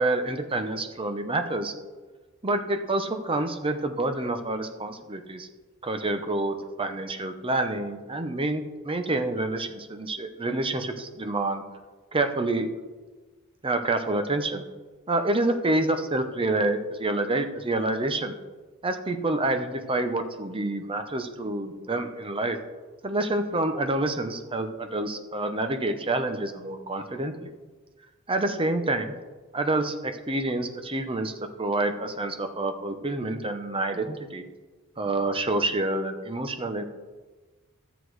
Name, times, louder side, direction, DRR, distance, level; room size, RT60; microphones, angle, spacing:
voice 1, 0.0-1.7 2.4-5.5 5.8-11.6 12.1-12.7 13.6-14.6 15.1-18.3 18.8-22.6 23.0-27.5 28.3-29.2 29.5-31.3 31.6-34.4 35.0-36.8, right 2 dB, 25° right, 7 dB, 0.8 m, -28 dB
12.5 x 8.1 x 4.8 m, 1.3 s
head